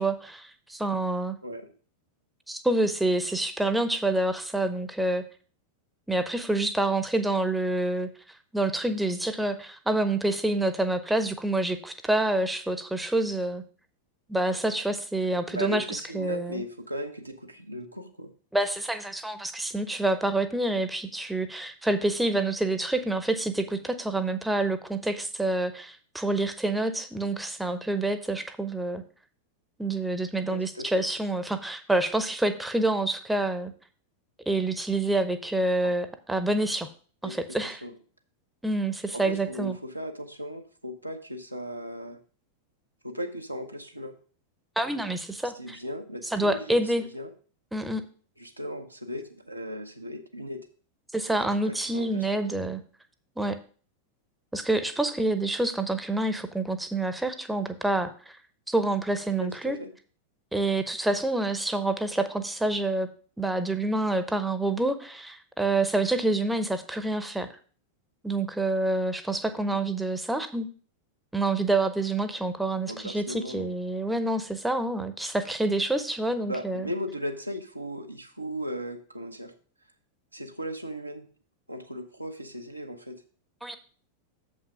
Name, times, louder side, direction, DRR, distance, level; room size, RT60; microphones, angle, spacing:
voice 1, 0.0-1.4 2.5-5.3 6.1-8.1 8.5-13.6 14.3-16.6 18.5-29.0 29.8-33.7 34.5-36.9 37.2-37.8 38.6-39.8 44.8-45.8 46.3-47.0 47.7-48.0 51.1-52.8 53.4-53.6 54.5-58.4 58.7-59.8 60.5-63.1 63.4-67.5 68.2-70.7 71.3-76.9 83.6-83.8, right 2 dB, 5° right, 10 dB, 0.8 m, -27 dB
voice 2, 1.4-1.7 15.2-18.3 30.5-31.0 35.8-35.9 37.2-37.3 37.6-37.9 39.1-42.2 43.0-44.1 45.5-47.3 48.4-50.6 51.6-52.5 59.4-59.9 69.7-69.8 72.9-73.7 76.5-79.5 80.3-81.3 81.7-83.2, equal, 85° right, 4 dB, 0.9 m, -37 dB
7.3 x 5.5 x 4.9 m, 0.41 s
figure-of-eight pair, 90°, 0 cm